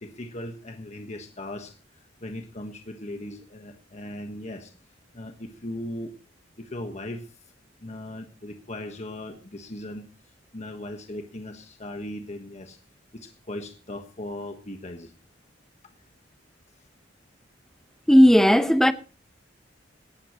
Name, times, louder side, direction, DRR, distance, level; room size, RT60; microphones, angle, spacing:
voice 1, 0.0-4.7 5.1-6.1 6.6-7.3 7.8-12.8 13.1-15.1 16.7-16.8, left 1 dB, 40° left, 1.3 m, -38 dB
voice 2, 18.1-18.9, equal, ahead, 0.8 m, -15 dB
18.0 x 13.0 x 3.0 m
head